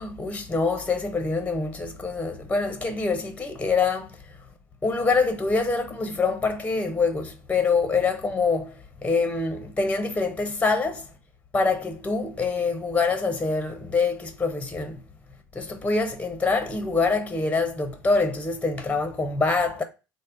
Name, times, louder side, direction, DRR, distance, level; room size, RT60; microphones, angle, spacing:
voice 1, 0.0-4.1 4.8-11.0 11.5-15.0 15.5-19.8, left 4 dB, 15° left, 0.7 m, -25 dB
3.3 x 2.1 x 3.6 m
hypercardioid pair, 75°, 10 cm